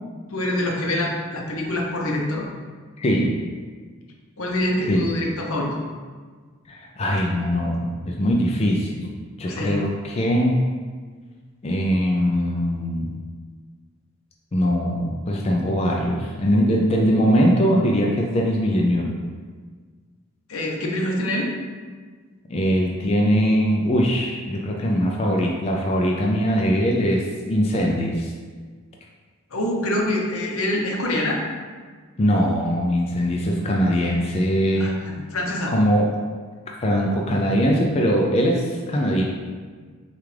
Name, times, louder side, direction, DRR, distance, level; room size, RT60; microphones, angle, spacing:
voice 1, 0.3-2.5 4.4-5.8 9.5-9.8 20.5-21.5 29.5-31.4 34.8-35.7, left 1 dB, 80° left, -1 dB, 0.8 m, -25 dB
voice 2, 3.0-3.4 4.9-5.1 6.7-9.1 9.4-10.6 11.6-13.2 14.5-19.1 22.5-28.3 32.2-34.9 35.7-36.2 36.7-39.2, equal, 30° left, -1 dB, 0.4 m, -21 dB
6.6 x 2.4 x 3.3 m, 1.6 s
head